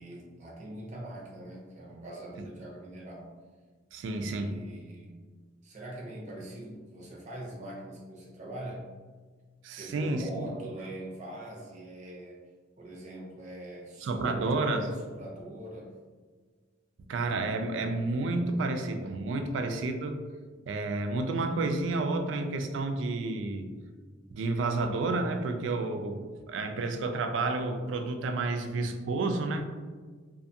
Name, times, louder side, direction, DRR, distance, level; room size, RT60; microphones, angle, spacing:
voice 1, 0.0-3.3 4.0-5.2 5.6-8.9 9.7-12.4 12.8-15.9, right 1 dB, 40° right, -3 dB, 0.7 m, -42 dB
voice 2, 3.9-4.5 9.6-10.5 14.0-14.9 17.1-20.2 20.7-23.7 24.3-29.7, right 3 dB, 75° right, 5 dB, 0.3 m, -30 dB
2.5 x 2.5 x 2.6 m, 1.5 s
head